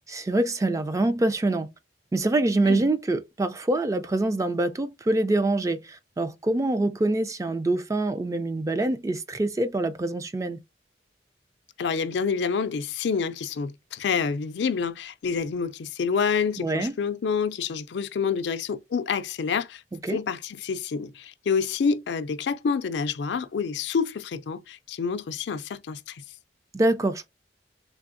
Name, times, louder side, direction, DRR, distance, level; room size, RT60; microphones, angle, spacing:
voice 1, 0.1-1.7 2.1-10.6 16.6-16.9 20.0-20.2 26.7-27.3, right 2 dB, 20° right, 0.3 m, -25 dB
voice 2, 11.8-19.8 20.1-26.2, left 5 dB, 75° left, 0.4 m, -28 dB
3.4 x 3.4 x 2.5 m
head